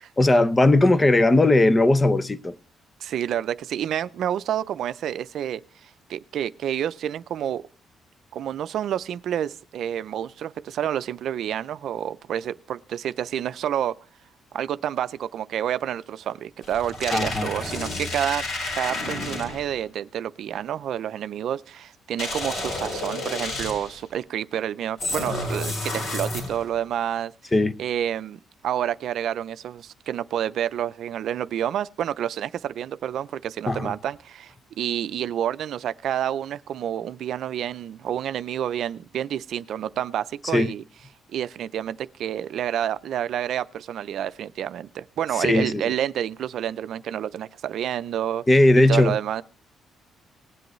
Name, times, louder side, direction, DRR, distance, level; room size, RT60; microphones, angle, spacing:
voice 1, 0.2-2.5 17.1-17.5 27.5-27.7 33.7-33.9 40.5-40.7 45.4-45.8 48.5-49.2, left 2 dB, 20° left, 0.6 m, -18 dB
voice 2, 3.0-7.6 8.3-13.9 14.5-18.4 18.8-27.3 27.8-40.8 41.3-48.4 48.9-49.4, right 10 dB, 70° right, 0.4 m, -29 dB
sound 1, 16.6-19.8 22.2-24.0 25.0-26.7, left 2 dB, 60° left, 4.5 m, -30 dB
19.5 x 7.8 x 3.1 m
cardioid pair, 90°, 0 cm